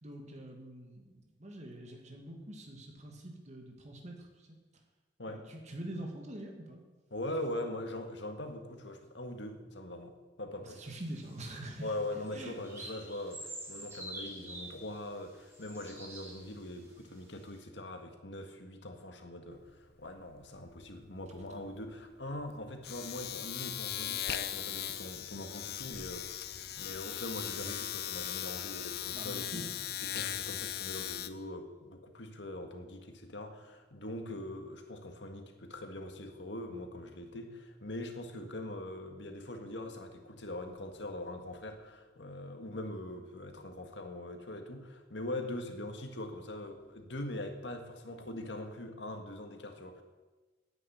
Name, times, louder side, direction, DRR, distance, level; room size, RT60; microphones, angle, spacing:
voice 1, 0.0-4.5 5.3-6.8 10.7-11.9 12.3-12.9 29.1-29.7, right 1 dB, 40° right, 2 dB, 2.1 m, -45 dB
voice 2, 7.1-10.9 11.8-29.7 30.0-50.0, left 1 dB, 75° left, 5 dB, 1.7 m, -42 dB
sound 1, 10.9-16.9 17.4-17.5, right 1 dB, 15° right, 2.9 m, -47 dB
Domestic sounds home sounds, 19.5-19.7 20.0-31.3, left 11 dB, 60° left, 0.6 m, -39 dB
10.0 x 9.3 x 9.2 m, 1.2 s
head